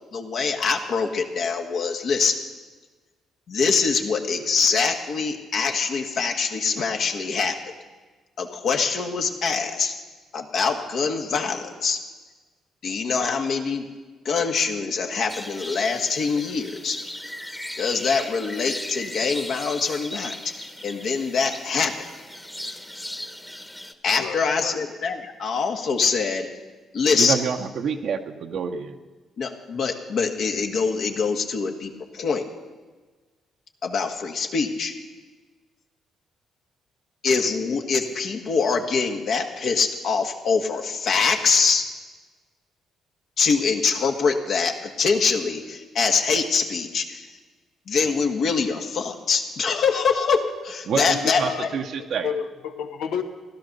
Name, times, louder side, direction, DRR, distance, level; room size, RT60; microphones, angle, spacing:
voice 1, 0.1-2.4 3.5-7.5 8.4-9.9 10.3-12.0 12.8-13.8 14.2-17.0 17.8-21.9 24.0-26.5 26.9-27.4 29.4-32.4 33.8-34.9 37.2-41.9 43.4-47.4 47.9-51.4, left 5 dB, 65° left, 3 dB, 1.6 m, -24 dB
sound 1, 15.3-23.9, left 1 dB, 10° left, 1.1 m, -37 dB
voice 2, 24.2-24.8 50.9-51.7 52.2-53.2, left 7 dB, 85° left, 6 dB, 1.4 m, -31 dB
voice 3, 27.2-29.0 50.9-52.3, right 6 dB, 70° right, 4 dB, 0.8 m, -27 dB
15.5 x 11.5 x 6.7 m, 1.3 s
cardioid pair, 90°, 0 cm